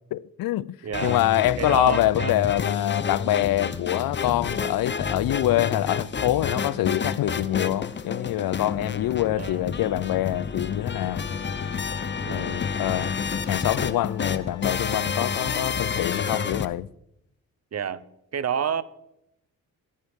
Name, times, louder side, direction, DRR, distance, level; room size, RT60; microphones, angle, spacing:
voice 1, 0.1-11.2 12.3-13.2 13.5-16.9, left 14 dB, 70° left, 0.5 m, -25 dB
voice 2, 0.8-1.2 1.6-2.4 9.4-9.7 12.2-12.6 17.7-18.1 18.3-18.8, right 8 dB, 45° right, 0.8 m, -29 dB
sound 1, 0.9-16.6, left 6 dB, 30° left, 0.8 m, -30 dB
Trumpet, 10.8-15.9, left 3 dB, 10° right, 5.0 m, -50 dB
14.5 x 11.0 x 3.6 m
cardioid pair, 70°, 36 cm